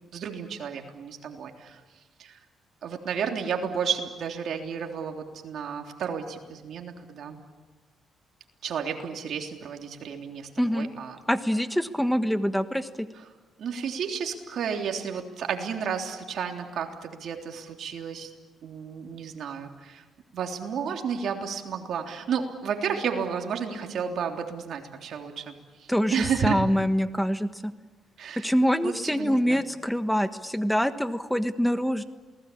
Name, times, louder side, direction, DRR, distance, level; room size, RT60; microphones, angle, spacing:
voice 1, 0.1-1.8 2.2-2.4 2.8-7.4 8.6-11.2 13.1-13.2 13.6-18.3 18.6-20.0 20.3-26.6 28.2-28.5 28.8-29.6, right 7 dB, 65° right, 3 dB, 3.4 m, -32 dB
voice 2, 10.6-10.9 11.3-13.1 25.9-27.7 28.4-32.0, equal, ahead, 10 dB, 1.4 m, -25 dB
28.0 x 19.5 x 8.7 m, 1.3 s
cardioid pair, 90°, 0 cm